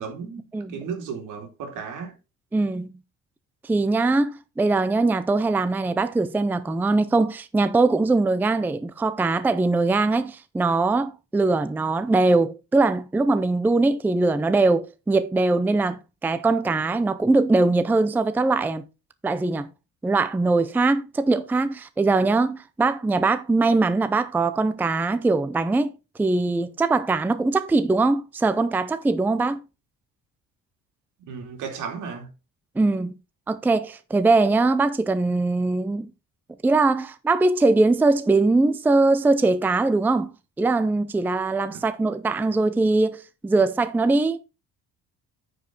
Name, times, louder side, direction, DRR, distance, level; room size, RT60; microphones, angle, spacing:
voice 1, 0.0-2.1 31.2-32.3 41.7-41.8, right 6 dB, 80° right, 2.8 m, -34 dB
voice 2, 2.5-2.9 3.6-18.8 19.2-19.7 20.0-25.9 26.2-29.6 32.8-33.1 33.5-36.1 36.6-40.3 40.6-44.4, right 3 dB, 5° right, 0.4 m, -21 dB
9.4 x 5.2 x 3.9 m
cardioid pair, 140°, 31 cm